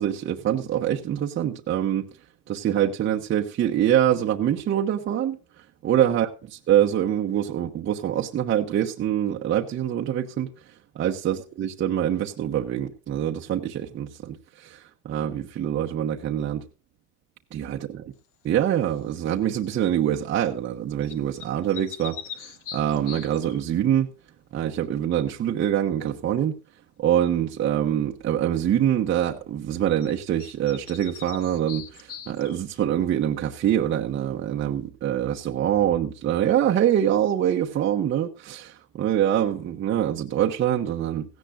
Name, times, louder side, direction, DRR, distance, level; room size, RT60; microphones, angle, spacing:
voice 1, 0.0-2.1 2.5-5.4 5.8-6.3 6.7-10.5 10.9-14.8 15.0-16.6 17.5-18.1 18.4-24.1 24.5-26.6 27.0-41.2, right 10 dB, 25° right, 1.0 m, -24 dB
sound 1, 18.9-19.2 21.0-23.6 30.0-30.1 30.4-32.8, left 8 dB, 80° left, 1.6 m, -41 dB
17.0 x 15.0 x 2.4 m
supercardioid pair, 115°, 44 cm